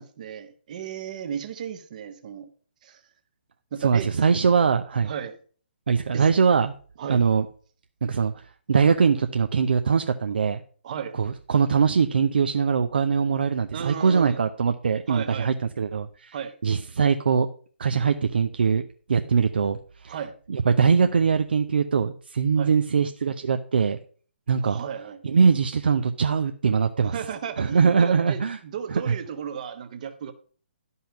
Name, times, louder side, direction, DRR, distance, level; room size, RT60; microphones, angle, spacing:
voice 1, 0.0-2.5 2.8-3.0 3.7-4.2 5.0-5.4 6.1-6.3 7.0-7.2 10.8-11.2 13.7-14.4 15.1-15.5 16.3-16.5 20.1-20.4 22.6-22.7 24.6-25.2 27.0-30.3, right 8 dB, 40° right, 9 dB, 1.1 m, -34 dB
voice 2, 3.8-5.1 5.9-6.7 7.1-7.5 8.0-8.3 8.7-10.6 11.2-16.3 16.6-17.5 17.8-18.8 19.1-19.8 20.0-20.1 20.5-24.0 24.5-24.8 25.2-27.2 27.6-28.6 28.9-29.1, right 6 dB, 60° right, 7 dB, 0.6 m, -22 dB
11.5 x 5.6 x 5.4 m, 0.43 s
figure-of-eight pair, 130°, 6 cm